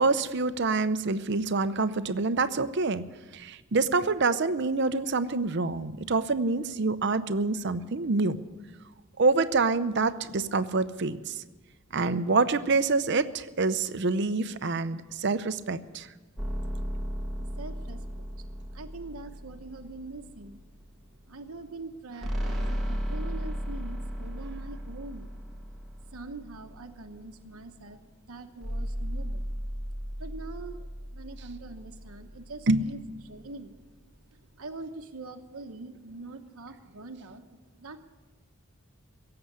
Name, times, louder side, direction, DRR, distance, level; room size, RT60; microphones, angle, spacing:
voice 1, 0.0-3.1 3.3-8.4 9.2-11.4 11.9-16.1 22.4-22.7 32.7-32.9, right 3 dB, 55° right, 12 dB, 0.7 m, -26 dB
sound 1, 16.4-20.8 22.2-27.0 28.6-33.0, equal, ahead, 1.6 m, -35 dB
voice 2, 17.4-18.3 18.7-20.6 21.2-25.4 26.1-28.0 28.3-29.5 30.2-33.8 34.3-38.0, right 3 dB, 90° right, 4 dB, 1.0 m, -43 dB
17.0 x 7.8 x 9.6 m, 1.2 s
head